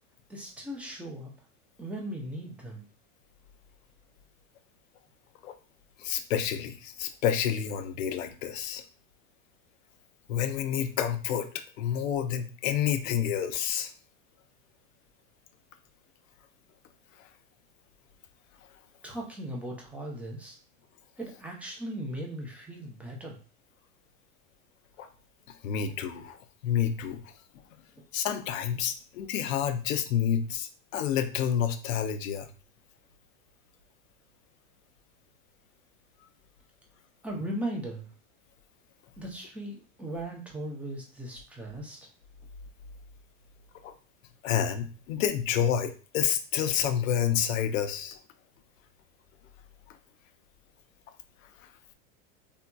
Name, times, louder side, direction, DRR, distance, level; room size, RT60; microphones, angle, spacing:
voice 1, 0.3-1.3 1.8-2.9 19.0-20.6 21.2-23.4 37.2-38.1 39.2-42.0, right 1 dB, 5° right, -2 dB, 0.5 m, -38 dB
voice 2, 6.0-8.8 10.3-13.9 25.0-25.1 25.6-26.4 26.6-27.2 28.1-32.5 43.8-43.9 44.4-48.2, left 9 dB, 80° left, 8 dB, 0.6 m, -29 dB
3.5 x 2.7 x 2.2 m, 0.37 s
supercardioid pair, 135°, 39 cm